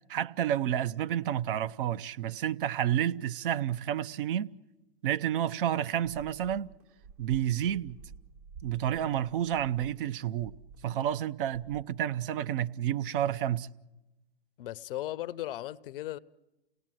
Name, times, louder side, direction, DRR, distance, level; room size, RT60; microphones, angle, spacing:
voice 1, 0.1-4.5 5.0-6.7 7.2-8.0 8.6-10.6 10.8-13.7, right 10 dB, 55° right, 0.8 m, -30 dB
sound 1, 6.0-11.2 11.5-11.8, right 6 dB, 35° right, 1.1 m, -51 dB
voice 2, 14.6-16.2, left 14 dB, 55° left, 0.7 m, -36 dB
29.5 x 18.0 x 7.6 m
hypercardioid pair, 120°, 32 cm